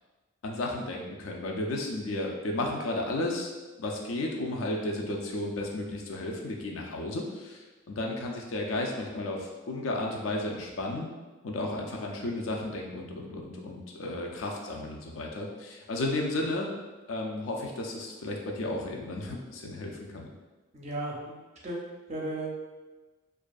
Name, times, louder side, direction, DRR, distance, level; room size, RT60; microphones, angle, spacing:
voice 1, 0.4-3.5 3.8-11.1 11.4-16.7 17.1-20.3, left 2 dB, 70° left, 0 dB, 0.4 m, -33 dB
voice 2, 20.7-22.5, right 1 dB, 35° right, -3 dB, 0.5 m, -36 dB
2.6 x 2.4 x 2.3 m, 1.2 s
head